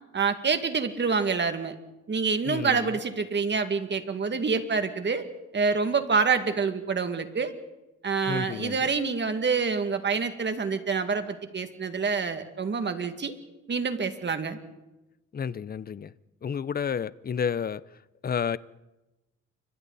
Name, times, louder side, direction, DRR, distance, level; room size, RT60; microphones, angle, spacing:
voice 1, 0.1-1.8 2.1-5.3 5.5-7.5 8.0-13.3 13.7-14.6, right 5 dB, 40° right, 2.1 m, -27 dB
voice 2, 2.4-2.9 8.3-8.9 15.3-16.1 16.4-17.8 18.2-18.6, left 7 dB, 30° left, 0.6 m, -30 dB
29.0 x 25.0 x 4.1 m
cardioid pair, 110°, 30 cm